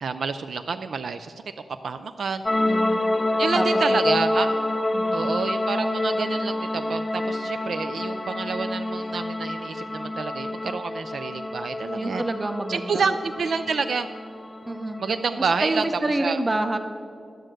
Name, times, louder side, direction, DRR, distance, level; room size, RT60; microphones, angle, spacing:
voice 1, 0.0-1.3 1.8-2.4 3.4-4.6 5.1-12.2 12.7-14.1 15.0-15.8 16.2-16.4, right 5 dB, 60° right, 9 dB, 0.3 m, -28 dB
sound 1, 2.5-15.7, left 1 dB, 20° left, 0.5 m, -27 dB
voice 2, 2.7-3.0 3.5-4.1 4.9-5.2 12.0-13.1 14.7-15.0 15.6-16.8, right 2 dB, 20° right, 8 dB, 0.7 m, -27 dB
12.0 x 6.4 x 7.6 m, 2.4 s
wide cardioid pair, 155°, 0 cm